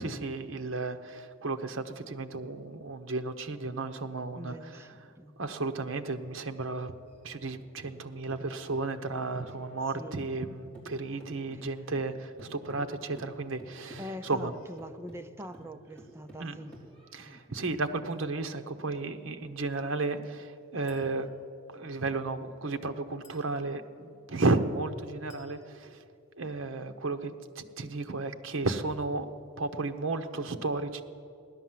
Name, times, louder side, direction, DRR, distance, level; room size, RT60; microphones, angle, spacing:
voice 1, 0.0-4.6 5.4-6.9 7.2-14.5 16.4-16.6 17.1-21.3 21.7-26.0 26.4-29.3 29.6-31.0, right 3 dB, 70° right, 7 dB, 0.9 m, -33 dB
voice 2, 4.3-5.3 9.9-10.3 11.5-11.8 14.0-16.7 17.2-17.4, equal, 10° right, 8 dB, 0.5 m, -44 dB
sound 1, 7.1-10.5 10.7-17.4, right 2 dB, 5° left, 3.6 m, -51 dB
Chink clink, 20.9-21.2 23.2-23.6 25.3-25.6, left 3 dB, 35° left, 3.2 m, -58 dB
16.0 x 11.5 x 7.5 m, 2.5 s
head